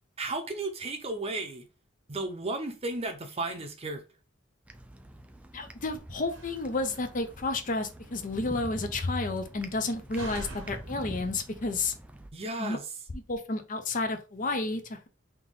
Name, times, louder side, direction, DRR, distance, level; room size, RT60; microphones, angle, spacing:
voice 1, 0.2-1.7 2.1-4.0 12.3-12.8, right 2 dB, 30° right, 0.7 m, -34 dB
sound 1, 4.6-12.3, right 1 dB, 5° right, 0.3 m, -45 dB
voice 2, 5.5-11.9 12.6-12.8 13.3-15.1, left 3 dB, 40° left, 0.6 m, -31 dB
Slam, 6.2-11.8, right 1 dB, 85° right, 1.1 m, -47 dB
3.6 x 2.7 x 3.9 m
head